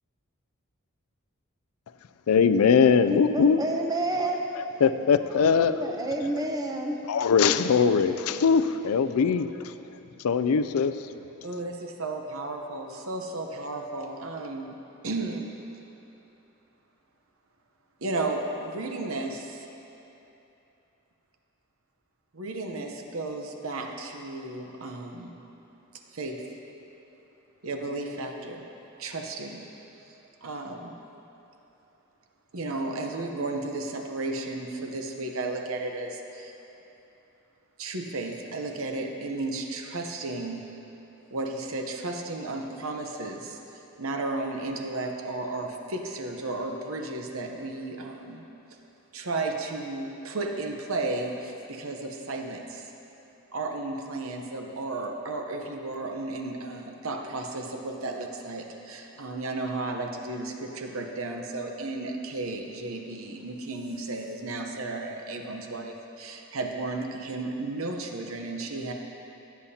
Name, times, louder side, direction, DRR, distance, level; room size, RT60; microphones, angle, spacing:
voice 1, 2.3-3.6 4.8-5.8 7.1-9.7 10.2-11.0, left 6 dB, 80° left, 12 dB, 0.4 m, -21 dB
voice 2, 3.1-4.4 5.4-7.0, right 1 dB, 15° right, 2 dB, 0.7 m, -29 dB
voice 3, 11.4-14.8 15.0-15.5 18.0-19.7 22.3-25.3 26.1-26.4 27.6-28.7 29.0-29.7 30.4-31.0 32.5-36.5 37.8-40.6 41.3-43.6 44.0-48.4 49.1-52.9 53.5-68.9, right 2 dB, 70° right, 3 dB, 0.9 m, -33 dB
16.0 x 8.5 x 2.8 m, 3.0 s
head